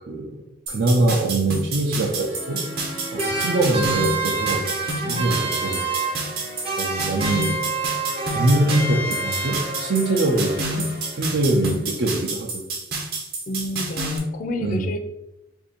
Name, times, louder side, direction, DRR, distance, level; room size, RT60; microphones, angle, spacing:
sound 1, 0.7-14.2, right 2 dB, 55° right, 0.8 m, -29 dB
voice 1, 0.7-2.6 3.1-4.6 5.0-5.4 5.6-5.8 6.8-7.6 8.2-10.9 11.2-12.6 14.6-14.8, right 2 dB, 75° right, -3 dB, 0.6 m, -23 dB
sound 2, 1.8-12.2, left 1 dB, 80° left, 0.8 m, -39 dB
sound 3, 3.2-6.4 6.6-10.0, right 4 dB, 30° right, 0.5 m, -28 dB
voice 2, 5.0-5.6 13.5-15.0, left 1 dB, 45° left, 7 dB, 0.4 m, -30 dB
2.6 x 2.6 x 4.1 m, 0.92 s
head